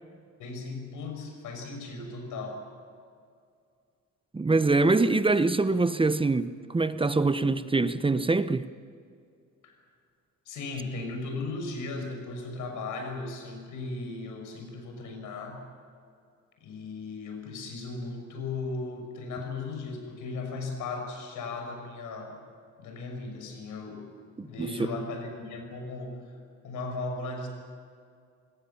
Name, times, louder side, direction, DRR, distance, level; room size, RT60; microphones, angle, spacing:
voice 1, 0.4-2.6 9.6-9.7 10.5-15.6 16.6-22.3 22.8-24.1 24.4-26.2 26.6-27.5, left 3 dB, 85° left, 6.4 m, -36 dB
voice 2, 4.3-8.7 24.4-24.7, right 3 dB, 15° right, 0.9 m, -24 dB
26.5 x 20.5 x 7.2 m
cardioid pair, 90°, 30 cm